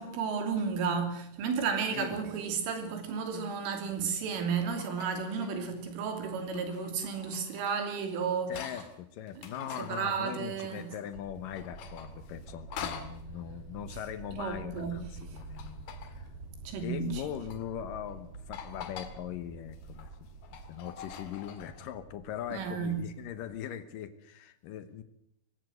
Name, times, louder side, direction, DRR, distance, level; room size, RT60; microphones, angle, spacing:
voice 1, 0.0-8.7 9.4-9.5 9.8-10.9 14.4-15.0 16.7-17.2 22.5-23.0, right 6 dB, 90° right, 5.5 m, -33 dB
sound 1, 2.6-2.8 4.0-5.8 6.2-9.0 9.3-11.2 11.5-13.2 15.2-16.3 17.1-17.6 18.1-18.2 18.5-19.2 19.6-21.9, left 8 dB, 60° left, 3.3 m, -46 dB
voice 2, 8.5-16.3 16.8-20.3 20.7-25.0, left 10 dB, 85° left, 1.9 m, -40 dB
sound 2, 11.1-23.6, right 4 dB, 45° right, 2.0 m, -48 dB
24.5 x 16.0 x 7.9 m
omnidirectional pair, 5.5 m